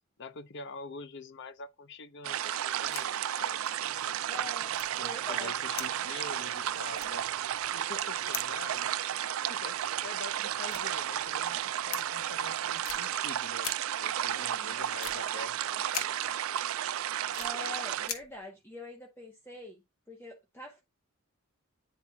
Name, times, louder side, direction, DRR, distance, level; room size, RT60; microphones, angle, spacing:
voice 1, 0.2-4.2 5.0-7.3 7.7-9.0 9.5-11.6 11.8-13.7 14.0-16.3, left 3 dB, 55° left, 0.7 m, -46 dB
sound 1, 2.2-18.1, right 11 dB, 75° right, 0.4 m, -33 dB
sound 2, 2.5-3.1 3.4-3.5 3.6-3.8 4.7-5.3 5.7-6.6 6.9-8.0 8.3-8.6 9.7-9.8 10.6-11.4 11.9-12.0 12.8-13.0 13.6-13.8 15.0-15.2 15.9-16.1 16.7-17.5 18.0-18.4, left 8 dB, 75° left, 1.0 m, -40 dB
voice 2, 4.2-5.5 14.4-14.8 17.4-19.8 20.1-20.8, left 1 dB, 10° left, 1.0 m, -45 dB
10.0 x 4.1 x 2.3 m
head